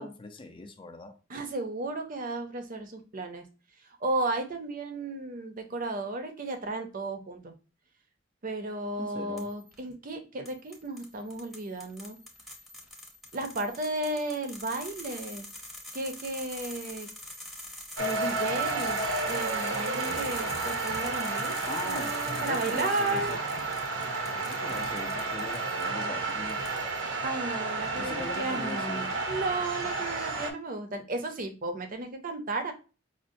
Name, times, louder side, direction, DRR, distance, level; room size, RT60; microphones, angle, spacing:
voice 1, 0.0-1.1 9.0-9.5 21.7-23.4 24.5-27.2 28.0-29.1, left 2 dB, 30° left, 0.5 m, -41 dB
voice 2, 1.3-3.4 4.0-7.5 8.4-12.2 13.3-15.5 15.9-17.1 18.0-19.0 19.2-23.4 24.7-24.8 27.2-32.7, right 2 dB, 45° right, 0.6 m, -34 dB
sound 1, 9.4-9.8 10.5-25.9 26.3-27.1, left 1 dB, ahead, 0.7 m, -45 dB
sound 2, 18.0-30.5, right 3 dB, 80° right, 0.8 m, -31 dB
5.0 x 2.1 x 2.6 m
head